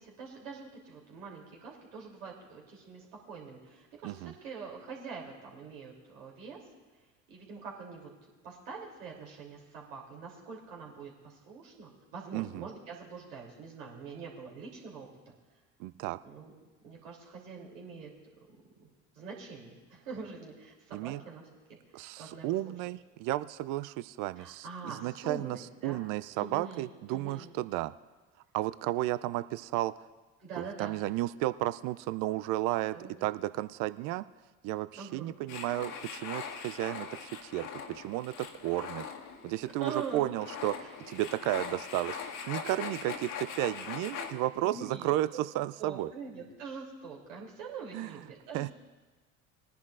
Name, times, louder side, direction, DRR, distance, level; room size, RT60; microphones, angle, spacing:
voice 1, 0.0-6.6 7.3-8.1 8.4-15.1 16.2-16.5 16.8-18.1 18.8-18.9 19.1-21.4 21.9-22.7 24.4-26.0 26.3-27.5 30.4-31.0 32.9-33.3 34.9-35.4 39.8-40.3 40.8-40.9 42.6-42.9 44.1-45.4 45.8-48.7, right 5 dB, 80° right, -3 dB, 3.2 m, -44 dB
voice 2, 12.3-12.7 15.8-16.2 20.9-21.2 21.9-27.9 28.5-29.9 30.5-34.2 34.6-39.0 39.4-42.2 42.5-46.1 47.9-48.1 48.5-48.7, right 16 dB, 55° right, 14 dB, 0.5 m, -33 dB
sound 1, 35.5-44.3, left 6 dB, 50° left, 1.6 m, -41 dB
20.5 x 10.5 x 2.5 m, 1.3 s
hypercardioid pair, 65°, 39 cm